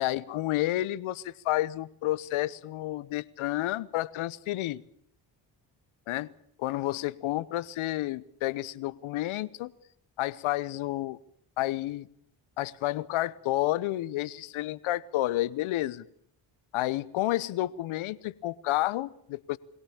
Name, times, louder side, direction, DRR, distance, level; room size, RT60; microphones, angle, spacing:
voice 1, 0.0-4.8 6.1-6.3 6.6-9.7 10.2-11.2 11.6-12.1 12.6-16.0 16.7-19.6, left 16 dB, 75° left, 17 dB, 1.0 m, -30 dB
22.5 x 17.5 x 8.8 m, 0.68 s
supercardioid pair, 55°, 49 cm